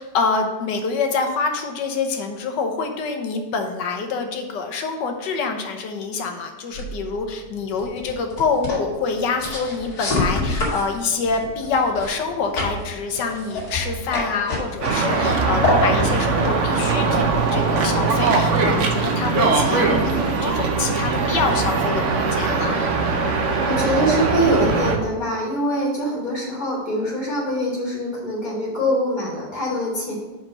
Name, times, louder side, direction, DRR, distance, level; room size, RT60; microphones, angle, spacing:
voice 1, 0.0-22.8, left 4 dB, 85° left, 4 dB, 1.6 m, -26 dB
sound 1, 6.7-17.9, left 1 dB, 60° left, 2.5 m, -28 dB
sound 2, 14.8-25.0, right 4 dB, 55° right, 1.0 m, -21 dB
voice 2, 23.7-30.2, equal, 25° left, -7 dB, 2.7 m, -24 dB
5.4 x 5.0 x 6.5 m, 1.1 s
omnidirectional pair, 1.9 m